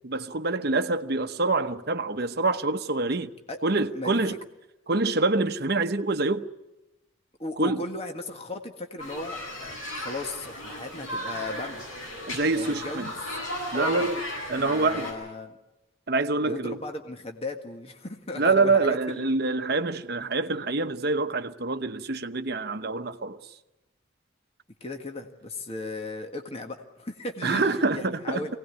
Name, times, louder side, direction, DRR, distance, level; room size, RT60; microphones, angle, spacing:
voice 1, 0.0-3.3 3.6-4.4 4.9-6.4 7.6-7.8 12.3-13.1 13.7-14.2 14.5-15.1 16.1-16.8 18.4-23.6 27.4-28.6, right 3 dB, 50° right, 1.0 m, -26 dB
voice 2, 3.5-4.2 7.4-11.8 12.5-13.1 13.7-14.1 14.5-15.6 16.4-19.3 24.8-27.6 27.9-28.6, left 2 dB, 30° left, 1.6 m, -36 dB
sound 1, 9.0-15.1, left 1 dB, 85° left, 8.0 m, -35 dB
23.5 x 18.0 x 9.5 m
head